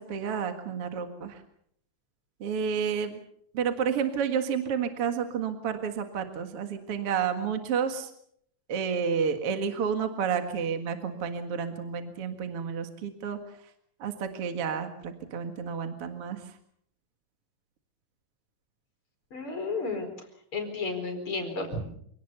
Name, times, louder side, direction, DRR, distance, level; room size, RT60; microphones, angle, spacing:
voice 1, 0.0-1.4 2.4-3.2 3.5-8.1 8.7-13.4 14.0-16.5, right 7 dB, 45° right, 7 dB, 2.3 m, -30 dB
voice 2, 19.3-20.1 20.5-21.8, left 3 dB, 35° left, 6 dB, 5.2 m, -32 dB
28.0 x 18.5 x 6.9 m, 0.69 s
omnidirectional pair, 4.1 m